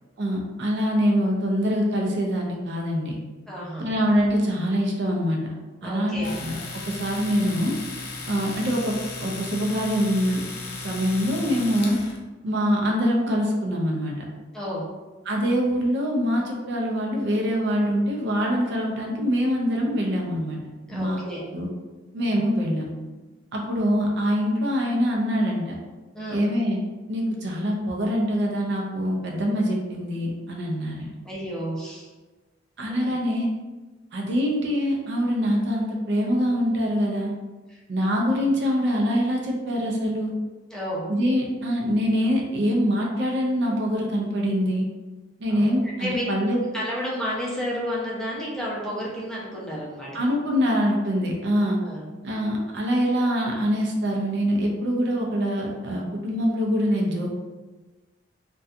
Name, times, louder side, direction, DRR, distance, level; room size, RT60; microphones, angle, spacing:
voice 1, 0.2-3.2 3.8-5.4 5.8-6.6 6.8-7.7 8.3-10.4 10.7-12.0 12.4-14.3 15.3-20.6 20.9-21.2 21.5-21.7 22.1-22.9 23.5-25.7 26.3-26.8 27.1-31.1 32.8-33.5 34.1-37.3 37.9-40.3 41.1-44.8 45.4-46.6 50.1-51.8 52.2-57.3, equal, 65° right, -1 dB, 0.5 m, -24 dB
voice 2, 3.5-3.9 5.8-6.3 14.5-14.9 20.9-21.4 22.2-22.4 26.1-26.5 31.2-32.1 32.9-33.1 37.7-37.8 40.7-41.1 45.5-46.2 46.7-50.2 51.8-52.1, equal, 5° left, -6 dB, 0.6 m, -32 dB
Domestic sounds home sounds, 6.2-12.2, left 3 dB, 55° left, 0.4 m, -36 dB
2.6 x 2.2 x 2.4 m, 1.2 s
head